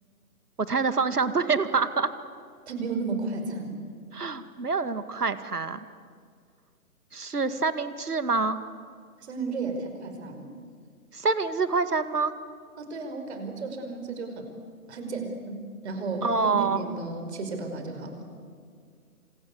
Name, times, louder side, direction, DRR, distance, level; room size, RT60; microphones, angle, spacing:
voice 1, 0.6-2.1 4.1-5.8 7.1-8.6 11.1-12.3 16.2-16.8, right 4 dB, 80° right, 12 dB, 2.1 m, -26 dB
voice 2, 2.7-3.8 9.2-10.5 12.8-14.5 14.9-18.2, right 3 dB, 45° right, 6 dB, 5.2 m, -33 dB
26.5 x 26.5 x 8.4 m, 2.1 s
figure-of-eight pair, 145°, 45 cm